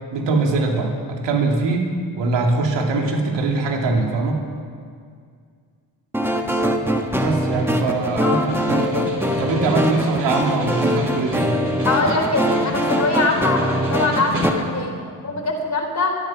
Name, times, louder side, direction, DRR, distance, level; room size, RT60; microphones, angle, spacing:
voice 1, 0.1-4.4 7.2-11.5 14.8-14.9 15.2-15.4, right 3 dB, 70° right, 1 dB, 2.8 m, -22 dB
sound 1, 6.1-14.5, equal, 5° right, 1.5 m, -22 dB
Snare drum, 7.0-14.9, equal, 30° right, 3.8 m, -32 dB
voice 2, 11.9-16.2, left 3 dB, 40° left, 1 dB, 3.7 m, -23 dB
24.0 x 8.9 x 6.2 m, 2.1 s
cardioid pair, 80°, 45 cm